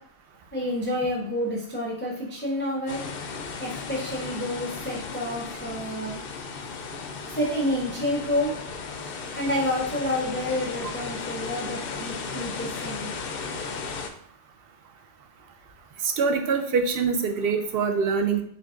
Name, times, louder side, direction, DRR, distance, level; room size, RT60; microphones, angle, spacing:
voice 1, 0.5-3.0 3.6-6.2 7.3-8.5 9.3-13.1, left 1 dB, 15° left, -3 dB, 0.4 m, -29 dB
sound 1, 2.9-14.1, left 4 dB, 65° left, 0.6 m, -35 dB
voice 2, 16.0-18.4, right 5 dB, 60° right, 6 dB, 0.7 m, -24 dB
4.4 x 3.9 x 2.5 m, 0.64 s
omnidirectional pair, 1.3 m